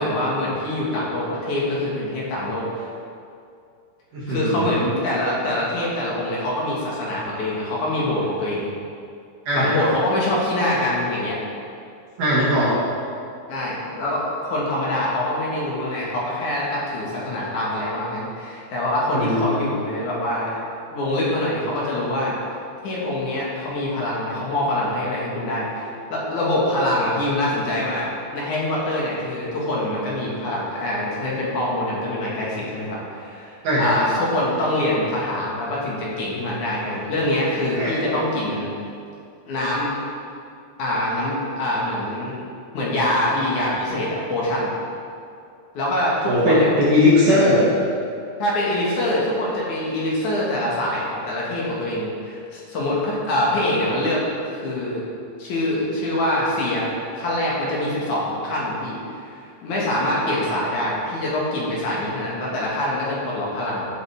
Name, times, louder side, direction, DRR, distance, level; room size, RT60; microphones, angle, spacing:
voice 1, 0.0-2.9 4.3-8.7 9.5-11.4 13.5-20.5 20.9-22.4 22.8-38.7 39.5-39.9 40.8-42.3 42.7-44.7 45.7-46.7 47.3-47.4 48.4-55.0 55.4-63.9, left 1 dB, 55° left, -5 dB, 2.7 m, -24 dB
voice 2, 4.1-4.7 9.5-9.7 12.2-12.7 19.1-19.4 33.6-33.9 37.7-38.1 46.2-47.6, left 1 dB, 50° right, -8 dB, 3.1 m, -19 dB
14.5 x 7.9 x 3.6 m, 2.4 s
omnidirectional pair, 5.1 m